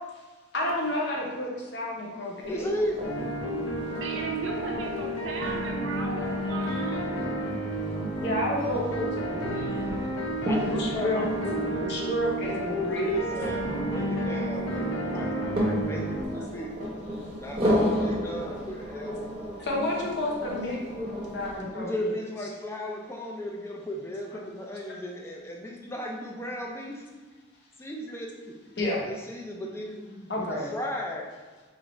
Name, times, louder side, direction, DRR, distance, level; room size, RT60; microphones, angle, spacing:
voice 1, 0.5-2.6 8.2-9.6 10.5-11.2 11.8-13.1 19.6-22.1 28.8-29.0 30.3-30.7, left 1 dB, 55° left, -3 dB, 0.8 m, -30 dB
sound 1, 2.4-21.6, equal, 30° right, 0.7 m, -34 dB
voice 2, 2.5-3.1 9.3-10.0 10.5-12.1 12.7-16.8 17.4-19.6 21.7-27.1 27.8-31.3, equal, 10° left, 0 dB, 0.3 m, -35 dB
sound 2, 3.0-16.2, right 1 dB, 85° left, 0.6 m, -31 dB
voice 3, 4.0-7.1, right 3 dB, 70° right, 1 dB, 0.5 m, -37 dB
4.1 x 2.4 x 3.1 m, 1.3 s
head